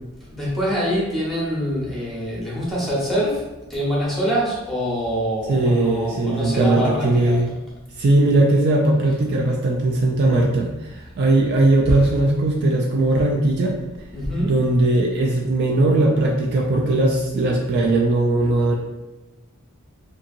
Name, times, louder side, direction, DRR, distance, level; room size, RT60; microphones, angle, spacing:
voice 1, 0.3-7.4 14.1-14.5, equal, ahead, -7 dB, 0.9 m, -25 dB
voice 2, 5.5-7.5 8.0-13.7 14.4-18.8, right 2 dB, 50° right, 0 dB, 0.3 m, -19 dB
2.8 x 2.7 x 2.5 m, 1.0 s
head